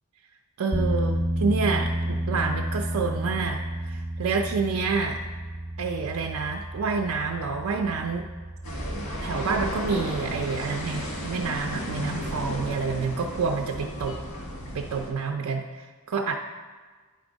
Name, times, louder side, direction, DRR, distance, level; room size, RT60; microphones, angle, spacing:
voice 1, 0.6-5.2 5.8-8.3 9.2-14.2 14.7-16.4, right 4 dB, 75° right, 3 dB, 0.4 m, -28 dB
sound 1, 0.7-13.0, right 1 dB, ahead, 0.5 m, -32 dB
sound 2, 8.6-15.1, equal, 85° left, 1.5 m, -34 dB
9.4 x 3.5 x 5.1 m, 1.4 s
head